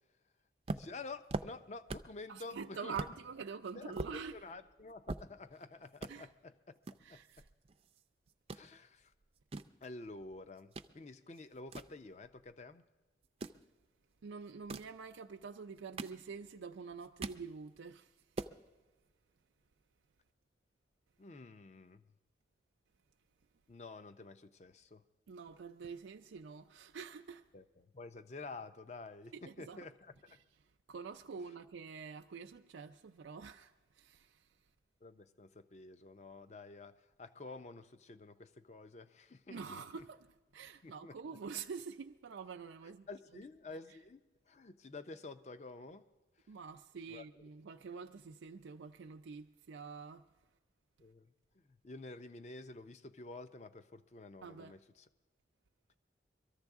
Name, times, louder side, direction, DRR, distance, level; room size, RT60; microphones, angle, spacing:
voice 1, 0.7-2.9 3.7-6.8 7.1-7.4 8.5-9.1 9.8-12.8 21.2-22.1 23.7-25.0 27.5-30.4 35.0-40.1 40.8-41.4 43.1-44.2 44.5-46.1 47.1-47.3 51.0-55.1, left 3 dB, 35° left, 0.5 m, -50 dB
sound 1, 0.7-2.2 2.6-2.7 3.0-3.2 3.6-5.6 5.9-6.1 6.8-8.0 8.3-8.7 9.2-10.9 11.3-12.6 13.2-13.6 14.5-15.0 15.6-16.6 16.9-17.5 17.9-18.0 18.2-18.6, right 3 dB, 30° right, 0.4 m, -43 dB
voice 2, 2.3-4.4 6.1-6.3 7.0-7.5 14.2-18.1 25.3-27.4 29.3-29.8 30.9-34.5 39.5-40.3 40.5-43.1 46.5-50.2 54.4-54.7, right 5 dB, 90° right, 0.4 m, -46 dB
23.5 x 14.0 x 3.6 m
head